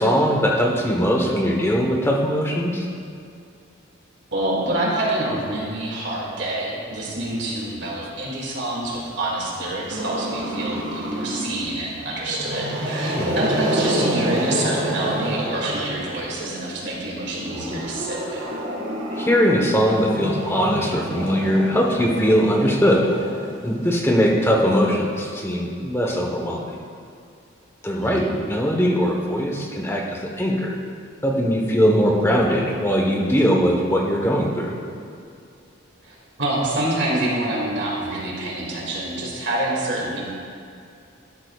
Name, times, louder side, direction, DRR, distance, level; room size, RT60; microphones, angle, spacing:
voice 1, 0.0-2.8 13.1-13.4 19.2-23.1 23.6-26.7 27.8-30.8 31.2-34.7, equal, 10° left, -1 dB, 1.1 m, -20 dB
voice 2, 4.3-18.5 27.9-28.3 36.0-40.2, right 1 dB, 60° right, -4 dB, 2.4 m, -27 dB
Growling, 9.9-11.7 12.2-16.4 17.3-23.9, right 1 dB, 75° right, 2.2 m, -28 dB
12.0 x 11.5 x 2.4 m, 2.5 s
head